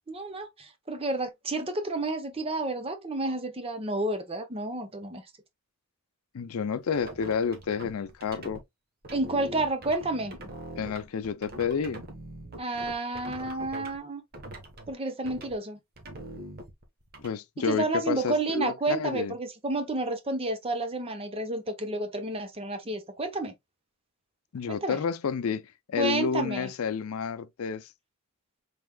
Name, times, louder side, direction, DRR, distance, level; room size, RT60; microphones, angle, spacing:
voice 1, 0.1-5.2 9.1-10.3 12.6-14.2 14.9-15.8 17.6-23.5 24.7-25.0 26.0-26.7, right 2 dB, 25° right, 0.8 m, -30 dB
voice 2, 6.3-8.6 10.8-12.0 17.2-19.3 24.5-27.9, left 6 dB, 75° left, 0.5 m, -30 dB
sound 1, 6.7-8.6 9.0-14.0 14.3-14.9 15.2-15.5 16.0-17.3, right 1 dB, 45° right, 1.2 m, -43 dB
5.5 x 3.5 x 2.2 m
head